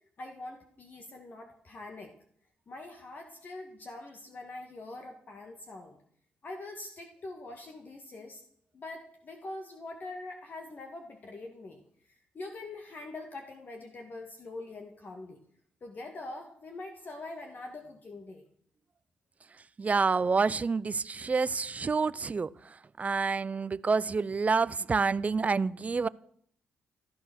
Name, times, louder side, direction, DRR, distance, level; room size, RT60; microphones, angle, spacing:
voice 1, 0.2-2.1 2.7-6.0 6.4-8.4 8.7-15.4 15.8-18.4, left 2 dB, 50° left, 2.2 m, -44 dB
voice 2, 19.8-26.1, right 4 dB, 35° right, 0.6 m, -28 dB
15.5 x 12.5 x 6.4 m
supercardioid pair, 55°, 4 cm